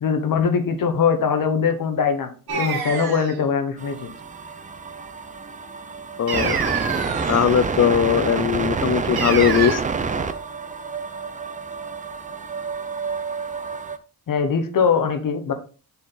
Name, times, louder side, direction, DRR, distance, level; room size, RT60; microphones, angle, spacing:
voice 1, 0.0-4.1 14.3-15.5, left 6 dB, 60° left, 1.2 m, -22 dB
sound 1, 2.5-3.4 6.3-7.6 9.2-9.8, right 6 dB, 85° right, 1.7 m, -27 dB
sound 2, 3.8-14.0, right 5 dB, 20° right, 0.5 m, -28 dB
voice 2, 6.2-6.6 7.3-9.8, left 9 dB, 45° left, 0.4 m, -19 dB
7.2 x 4.5 x 3.9 m
wide cardioid pair, 145°, 37 cm